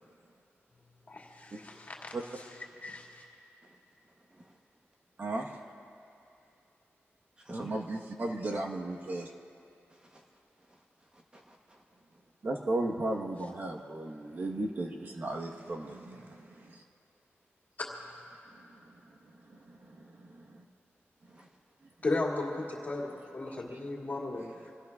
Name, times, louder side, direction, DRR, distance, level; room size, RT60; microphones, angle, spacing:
voice 1, 1.1-2.2 2.8-3.2 22.0-24.4, left 2 dB, 40° left, -3 dB, 2.4 m, -35 dB
voice 2, 4.2-4.6 7.4-7.7 9.9-11.8 21.3-21.5, right 1 dB, 20° right, 0 dB, 1.0 m, -50 dB
voice 3, 5.2-5.5 7.6-9.3 12.4-16.8 18.6-18.7 19.5-20.6, right 2 dB, 45° right, 0 dB, 1.2 m, -36 dB
27.5 x 17.5 x 2.4 m, 2.7 s
wide cardioid pair, 145°, 5 cm